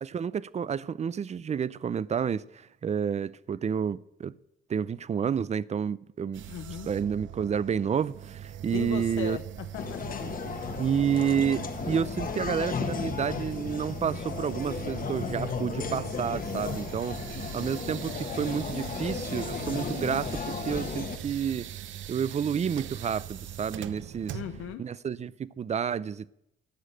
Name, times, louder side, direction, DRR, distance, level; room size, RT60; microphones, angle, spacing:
voice 1, 0.0-4.3 4.7-6.4 6.8-9.4 10.8-21.7 22.1-24.4 24.8-26.3, right 7 dB, 35° right, 0.5 m, -30 dB
sound 1, 6.3-24.8, right 10 dB, 75° right, 0.9 m, -41 dB
voice 2, 6.5-6.9 8.7-10.4 24.3-24.8, left 11 dB, 85° left, 0.8 m, -38 dB
sound 2, 9.7-21.2, left 5 dB, 45° left, 1.5 m, -35 dB
13.0 x 6.4 x 9.0 m
cardioid pair, 90°, 20 cm